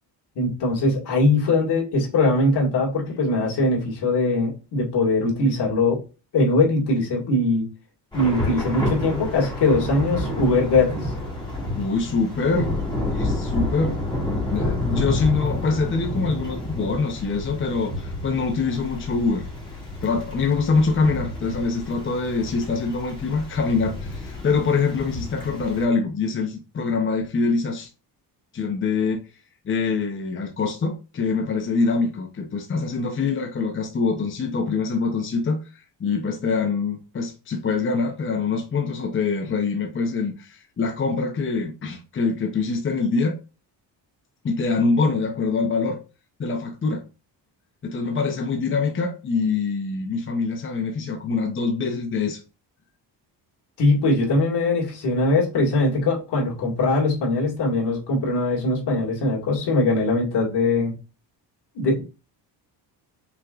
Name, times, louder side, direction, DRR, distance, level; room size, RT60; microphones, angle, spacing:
voice 1, 0.4-6.0 6.3-7.6 8.1-11.1 53.8-60.9 61.8-62.0, left 2 dB, 65° left, 2.3 m, -21 dB
Thunder / Rain, 8.1-25.8, left 1 dB, 10° left, 2.5 m, -29 dB
voice 2, 11.8-12.8 13.1-14.0 14.5-19.4 20.0-27.9 28.5-29.2 29.6-43.4 44.4-46.0 46.4-47.0 47.8-52.4, left 4 dB, 30° left, 0.8 m, -24 dB
5.8 x 3.7 x 2.5 m
cardioid pair, 125°, 43 cm